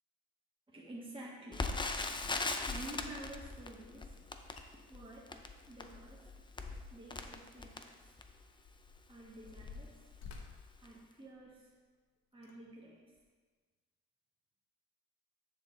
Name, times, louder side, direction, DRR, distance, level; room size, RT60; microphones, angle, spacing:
voice 1, 0.7-2.1 2.6-4.6 4.9-6.3 6.9-8.1 9.1-10.1 10.8-11.7 12.3-13.0, right 1 dB, 15° right, -4 dB, 1.4 m, -51 dB
Crackle, 1.5-8.5 9.1-9.2 9.5-9.7 10.3-10.6 10.8-10.9, left 3 dB, 15° left, 0.5 m, -40 dB
sound 1, 2.1-2.5 4.2-4.3 4.5-4.7 5.0-6.8 7.1-7.3 8.0-11.7 12.3-12.6 13.2-13.3, left 5 dB, 55° left, 1.1 m, -54 dB
7.1 x 6.2 x 3.8 m, 1.4 s
cardioid pair, 90°, 30 cm